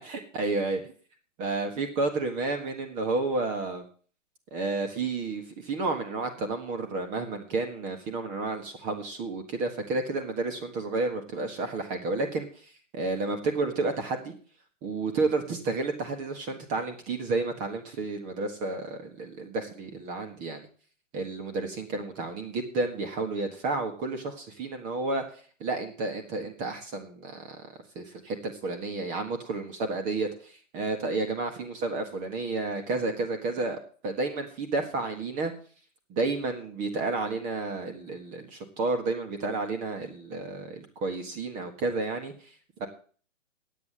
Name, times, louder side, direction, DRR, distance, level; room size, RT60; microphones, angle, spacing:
voice 1, 0.0-0.8 1.4-3.8 4.5-12.5 12.9-14.3 14.8-20.7 21.1-25.2 25.6-27.6 27.9-35.5 36.1-42.3 42.8-42.9, right 3 dB, 20° right, 5 dB, 1.5 m, -31 dB
9.7 x 8.6 x 7.5 m, 0.43 s
hypercardioid pair, 145°, 39 cm